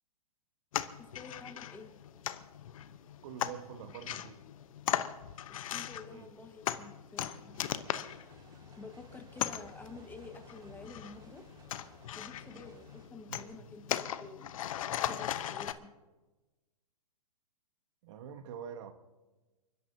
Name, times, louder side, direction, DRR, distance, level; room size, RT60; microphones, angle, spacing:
sound 1, 0.7-15.7, left 11 dB, 60° left, 0.9 m, -39 dB
voice 1, 1.0-2.0 3.5-3.6 5.7-7.7 8.8-11.4 12.1-14.6 15.1-15.9, left 3 dB, 10° left, 6 dB, 1.4 m, -50 dB
voice 2, 3.2-4.4 6.1-6.3 13.3-13.6 18.0-18.9, right 8 dB, 50° right, 8 dB, 1.4 m, -46 dB
sound 2, 7.5-13.1, right 4 dB, 20° right, 2.1 m, -59 dB
30.0 x 12.5 x 2.8 m, 1.2 s
hypercardioid pair, 125°, 20 cm